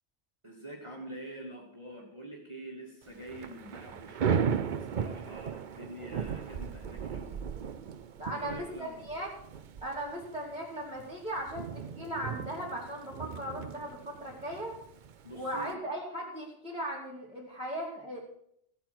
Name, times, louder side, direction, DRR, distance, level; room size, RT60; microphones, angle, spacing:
voice 1, 0.4-7.4 8.3-9.0 15.2-15.8, right 1 dB, 25° right, -2 dB, 2.2 m, -46 dB
Thunder / Rain, 3.1-15.7, right 7 dB, 50° right, 0.7 m, -37 dB
voice 2, 8.2-9.3 9.8-14.8 15.3-18.2, equal, 5° right, -7 dB, 2.9 m, -38 dB
15.5 x 8.7 x 6.1 m, 0.70 s
omnidirectional pair, 1.2 m